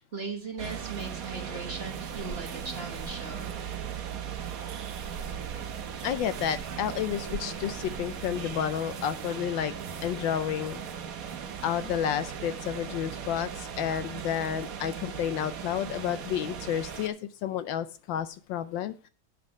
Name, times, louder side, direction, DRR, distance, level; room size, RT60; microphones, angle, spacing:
voice 1, 0.0-3.5, right 3 dB, 35° right, 1 dB, 1.3 m, -38 dB
sound 1, 0.6-17.1, right 7 dB, 55° right, 1.1 m, -38 dB
voice 2, 6.0-9.7 10.0-10.8 11.6-18.9, left 9 dB, 75° left, 13 dB, 1.2 m, -31 dB
8.6 x 5.9 x 5.9 m, 0.36 s
omnidirectional pair, 2.2 m